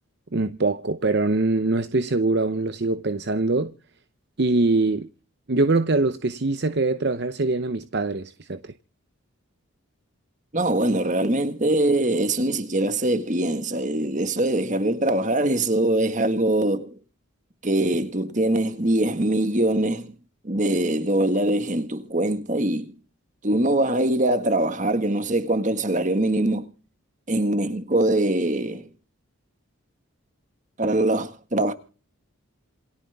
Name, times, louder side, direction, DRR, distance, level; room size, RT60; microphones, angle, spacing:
voice 1, 0.3-3.7 4.4-5.1 5.5-8.7, right 3 dB, 50° right, 0.7 m, -23 dB
voice 2, 10.5-17.0 17.6-20.1 20.4-22.9 23.4-26.7 27.3-28.9 30.8-31.7, right 1 dB, 35° right, 1.8 m, -23 dB
27.5 x 9.4 x 3.5 m
head